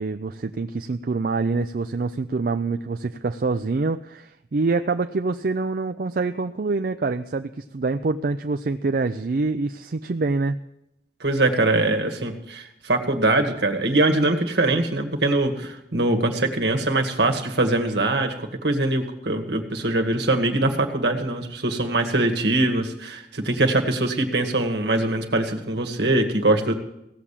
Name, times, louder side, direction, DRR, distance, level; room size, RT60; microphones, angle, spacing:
voice 1, 0.0-10.6, right 3 dB, 55° right, 8 dB, 0.5 m, -25 dB
voice 2, 11.2-26.7, right 2 dB, 75° right, 5 dB, 1.9 m, -22 dB
16.5 x 7.4 x 8.3 m, 0.82 s
head